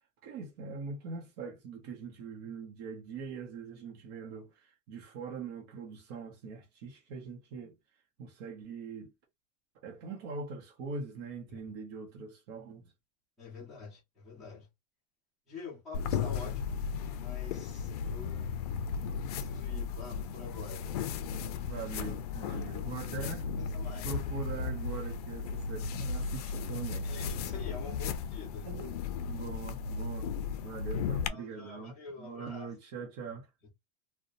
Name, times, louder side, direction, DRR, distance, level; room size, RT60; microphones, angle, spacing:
voice 1, 0.2-7.8 8.2-9.1 9.8-12.9 21.6-23.5 24.0-27.1 28.6-28.9 29.3-30.3 30.6-33.5, right 5 dB, 40° right, 0.7 m, -42 dB
voice 2, 13.4-14.7 15.5-16.8 17.1-18.6 19.3-20.9 22.4-23.3 23.6-24.2 27.0-28.8 31.3-32.7 33.6-33.7, left 4 dB, ahead, 0.8 m, -47 dB
sound 1, 15.9-31.3, left 6 dB, 70° left, 0.4 m, -35 dB
2.8 x 2.1 x 2.5 m
supercardioid pair, 175°, 20 cm